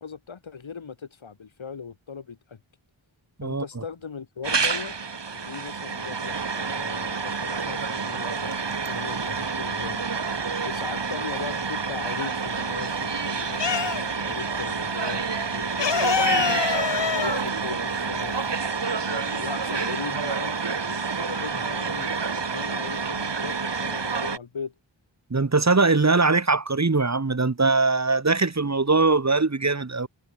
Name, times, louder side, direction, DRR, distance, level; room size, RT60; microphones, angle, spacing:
voice 1, 0.0-2.6 3.4-4.9 5.3-10.0 10.6-16.6 17.1-18.4 18.9-24.7, left 6 dB, 90° left, 5.6 m, -39 dB
sound 1, 4.4-24.4, right 5 dB, 65° right, 4.3 m, -28 dB
sound 2, 8.4-9.3 9.6-11.6 12.0-14.4 14.6-14.8 15.0-18.6, left 8 dB, 65° left, 1.1 m, -27 dB
voice 2, 25.3-30.1, right 3 dB, 35° right, 2.1 m, -21 dB
wide cardioid pair, 60°, 46 cm